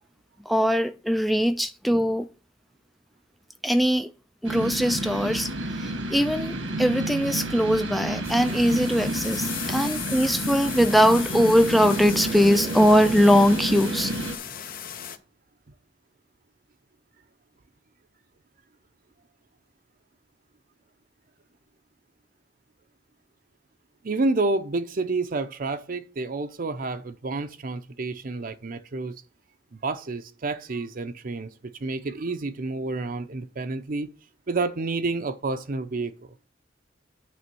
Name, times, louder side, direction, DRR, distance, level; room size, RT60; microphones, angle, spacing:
voice 1, 0.5-2.2 3.6-4.1 4.4-14.1, equal, ahead, 0.3 m, -21 dB
sound 1, 4.4-14.4, right 1 dB, 90° right, 1.6 m, -30 dB
sound 2, 8.2-15.2, left 9 dB, 50° left, 0.7 m, -36 dB
voice 2, 24.0-29.2 29.8-31.5 31.8-34.1 34.5-36.1, right 3 dB, 50° right, 0.6 m, -29 dB
9.3 x 3.5 x 6.8 m
head